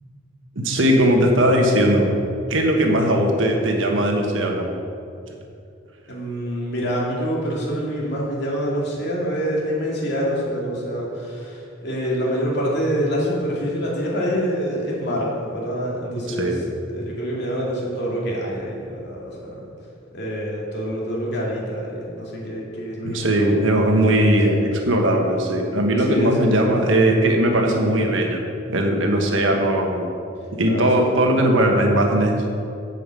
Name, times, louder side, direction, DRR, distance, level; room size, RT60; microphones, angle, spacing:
voice 1, 0.5-2.1 2.5-4.7 16.4-16.6 23.0-28.4 28.7-30.1 30.6-32.4, right 1 dB, 85° right, 2 dB, 1.4 m, -19 dB
voice 2, 6.1-16.6 16.9-19.6 20.1-24.4 26.0-26.7 30.6-31.5, equal, 65° left, -4 dB, 2.5 m, -26 dB
8.6 x 5.8 x 7.7 m, 2.5 s
head